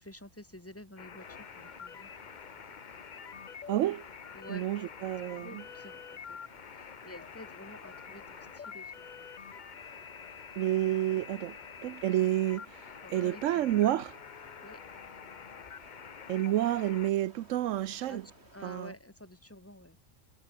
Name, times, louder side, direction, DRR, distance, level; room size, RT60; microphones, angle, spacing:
voice 1, 0.0-2.1 4.3-4.7 5.4-6.4 6.7-9.3 13.0-13.7 14.6-14.8 18.1-18.2 18.5-20.0, left 1 dB, 10° left, 3.9 m, -50 dB
sound 1, 1.0-17.1, left 7 dB, 45° left, 0.9 m, -47 dB
sound 2, 1.2-18.9, right 1 dB, 55° right, 7.5 m, -59 dB
voice 2, 3.7-4.0 4.5-5.6 10.6-11.6 11.8-14.2 16.3-18.2 18.6-18.9, right 13 dB, 80° right, 1.0 m, -29 dB
omnidirectional pair, 1.3 m